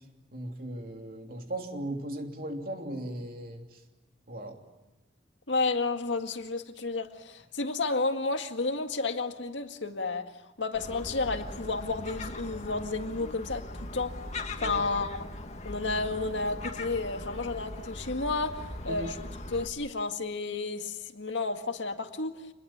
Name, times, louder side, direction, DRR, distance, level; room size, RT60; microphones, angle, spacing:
voice 1, 0.3-3.6 4.3-4.6 14.6-14.8 18.9-19.1, right 1 dB, 50° right, 3.1 m, -37 dB
voice 2, 5.5-10.3 10.6-14.1 14.6-15.3 15.6-22.4, left 3 dB, 80° left, 2.0 m, -31 dB
Gull seagull, 10.7-19.7, left 2 dB, 40° left, 2.3 m, -40 dB
28.0 x 20.5 x 8.8 m
head